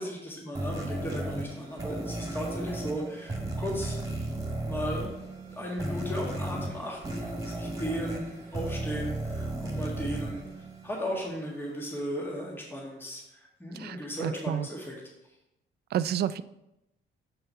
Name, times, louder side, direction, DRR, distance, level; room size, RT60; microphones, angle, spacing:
voice 1, 0.0-4.0 4.6-5.1 5.5-10.4 10.8-14.9, equal, 10° left, -2 dB, 1.6 m, -36 dB
sound 1, 0.5-11.3, right 1 dB, 15° right, 2.1 m, -35 dB
voice 2, 13.7-14.7 15.9-16.4, right 10 dB, 55° right, 15 dB, 0.4 m, -30 dB
6.9 x 5.5 x 4.4 m, 0.90 s
cardioid pair, 90°, 20 cm